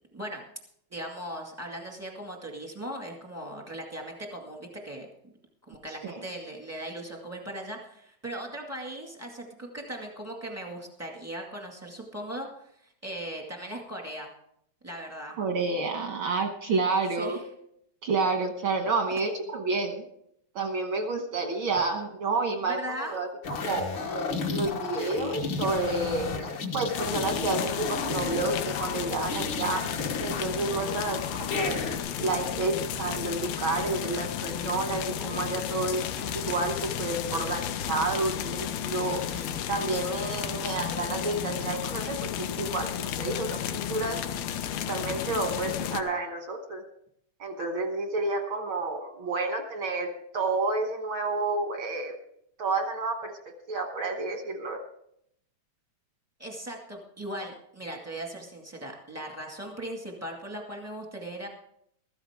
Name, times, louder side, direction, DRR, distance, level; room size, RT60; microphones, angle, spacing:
voice 1, 0.9-5.1 5.7-12.5 12.8-14.3 14.8-15.4 17.2-17.4 22.6-23.2 56.4-61.5, right 1 dB, 15° right, 0 dB, 0.5 m, -38 dB
voice 2, 15.4-17.4 18.0-20.1 20.5-23.3 23.6-26.5 26.7-29.8 30.2-31.8 32.2-36.1 36.3-44.2 44.9-46.9 47.4-52.1 52.6-53.4 53.7-54.8, right 3 dB, 75° right, 3 dB, 1.2 m, -30 dB
sound 1, 23.4-32.0, left 4 dB, 65° left, 1.2 m, -33 dB
sound 2, 26.9-46.0, left 9 dB, 85° left, 2.7 m, -33 dB
15.5 x 13.5 x 3.6 m, 0.71 s
omnidirectional pair, 4.2 m